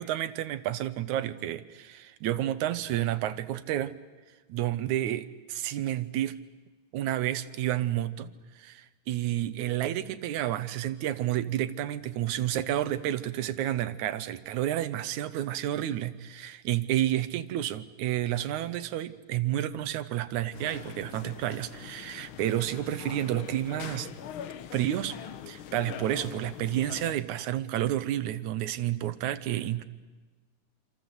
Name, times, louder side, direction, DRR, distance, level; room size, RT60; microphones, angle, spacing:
voice 1, 0.0-3.9 4.5-6.4 6.9-24.1 24.7-25.2 25.5-29.8, right 12 dB, 85° right, 12 dB, 2.4 m, -30 dB
sound 1, 20.5-27.1, left 9 dB, 60° left, 1.4 m, -42 dB
27.0 x 26.0 x 8.1 m, 1.3 s
omnidirectional pair, 3.3 m